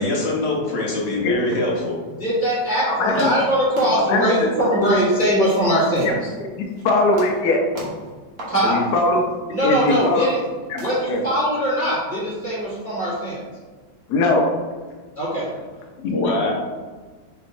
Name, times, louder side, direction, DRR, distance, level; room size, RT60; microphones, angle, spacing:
voice 1, 0.0-2.0 16.0-16.5, left 2 dB, 50° left, -2 dB, 0.9 m, -23 dB
voice 2, 2.2-6.1 8.5-8.8 9.5-10.4 10.8-13.4 15.1-15.5, equal, 10° right, -11 dB, 1.2 m, -21 dB
sound 1, 2.6-2.7 3.1-3.5 3.8-4.3 4.8-5.1 5.4-6.3 6.6-6.8 7.1-7.4 7.7-8.1 8.4-8.6 9.1-9.2 9.7-10.5 10.8-11.2, right 1 dB, 60° right, 1.3 m, -35 dB
voice 3, 2.9-3.3 4.1-4.3 6.0-6.1 6.8-7.6 8.6-9.2 9.6-10.3 10.7-10.8 11.1-11.2 14.1-14.5, left 2 dB, 75° left, 2 dB, 1.2 m, -20 dB
4.3 x 3.0 x 2.5 m, 1.4 s
omnidirectional pair, 1.8 m